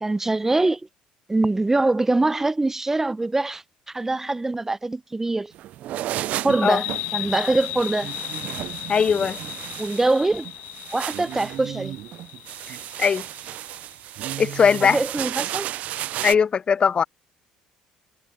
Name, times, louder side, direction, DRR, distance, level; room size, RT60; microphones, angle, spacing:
voice 1, 0.0-0.8 1.3-3.6 3.9-5.5 6.4-6.9 7.1-8.1 9.8-10.5 10.9-12.0 14.9-15.7, right 2 dB, 15° right, 0.7 m, -23 dB
sound 1, 5.5-16.4, right 13 dB, 65° right, 0.4 m, -33 dB
sound 2, 6.5-13.7, left 19 dB, 80° left, 1.9 m, -35 dB
voice 2, 8.9-9.4 13.0-13.2 14.4-15.0 16.2-17.0, left 6 dB, 40° left, 0.6 m, -19 dB
supercardioid pair, 70°, 3 cm